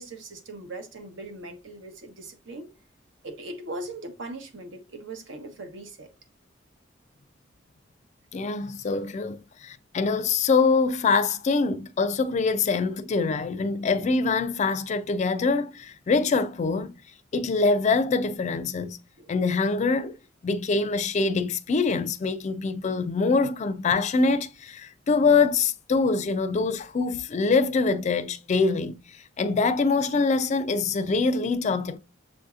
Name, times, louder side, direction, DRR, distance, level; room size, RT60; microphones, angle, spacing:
voice 1, 0.0-2.7 3.2-6.1 19.2-19.3, right 2 dB, 75° right, 0.9 m, -39 dB
voice 2, 8.3-16.9 17.3-19.0 19.3-20.1 20.4-29.0 29.4-32.0, left 4 dB, 35° left, 0.3 m, -24 dB
6.9 x 2.7 x 2.4 m
head